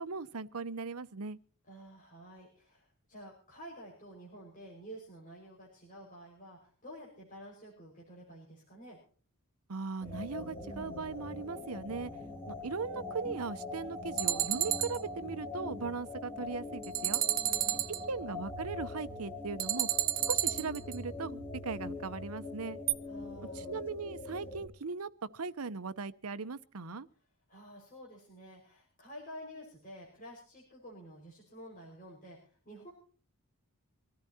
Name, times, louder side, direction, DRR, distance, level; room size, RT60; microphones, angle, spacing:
voice 1, 0.0-1.4 9.7-12.1 12.5-17.2 18.1-19.9 20.3-22.8 23.5-27.1, right 4 dB, 80° right, 0.8 m, -39 dB
voice 2, 1.7-9.0 17.4-18.2 23.1-23.8 27.5-32.9, equal, 35° left, 5.3 m, -50 dB
sound 1, 10.0-24.7, left 2 dB, 10° left, 3.2 m, -43 dB
sound 2, 14.2-15.0 16.8-18.0 19.6-21.0 22.9-23.0, right 13 dB, 40° right, 0.8 m, -31 dB
24.5 x 14.5 x 2.8 m
head